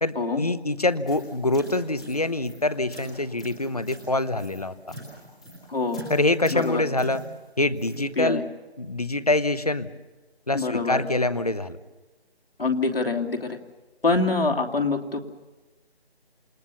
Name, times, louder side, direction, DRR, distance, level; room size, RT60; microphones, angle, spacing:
voice 1, 0.0-4.9 6.1-7.2 7.6-8.5 8.8-9.9 10.5-11.8, left 2 dB, 35° left, 15 dB, 1.0 m, -25 dB
sound 1, 0.9-8.1, right 1 dB, 5° left, 1.7 m, -43 dB
voice 2, 5.7-6.0 6.5-6.8 8.2-8.4 10.5-11.1 12.6-13.6 14.0-15.3, left 3 dB, 60° left, 4 dB, 3.0 m, -25 dB
28.5 x 20.0 x 7.0 m, 1.2 s
figure-of-eight pair, 180°, 32 cm